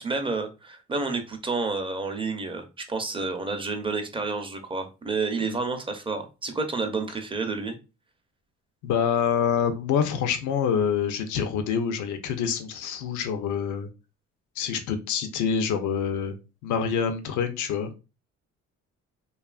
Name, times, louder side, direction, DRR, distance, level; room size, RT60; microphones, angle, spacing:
voice 1, 0.0-7.8, right 3 dB, 15° right, 6 dB, 0.6 m, -30 dB
voice 2, 8.8-13.9 14.6-16.3 16.6-17.9, left 7 dB, 80° left, 7 dB, 0.5 m, -26 dB
2.7 x 2.4 x 2.3 m, 0.29 s
cardioid pair, 90°, 30 cm